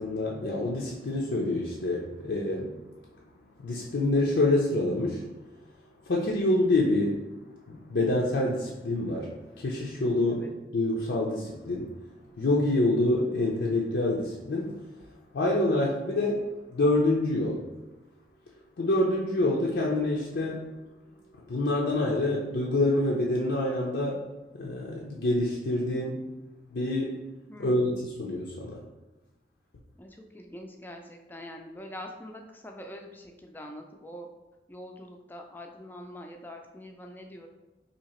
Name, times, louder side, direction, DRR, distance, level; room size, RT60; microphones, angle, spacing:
voice 1, 0.0-2.8 3.6-5.2 6.1-7.3 7.7-9.3 9.6-10.5 10.7-11.9 12.4-14.8 15.3-17.7 18.8-20.7 21.3-24.2 24.5-26.2 26.7-27.2 27.6-28.8, left 2 dB, 85° left, -3 dB, 0.5 m, -27 dB
voice 2, 27.5-28.0 30.0-34.3 34.7-37.5, equal, 10° left, 3 dB, 0.3 m, -44 dB
2.9 x 2.8 x 4.2 m, 1.1 s
head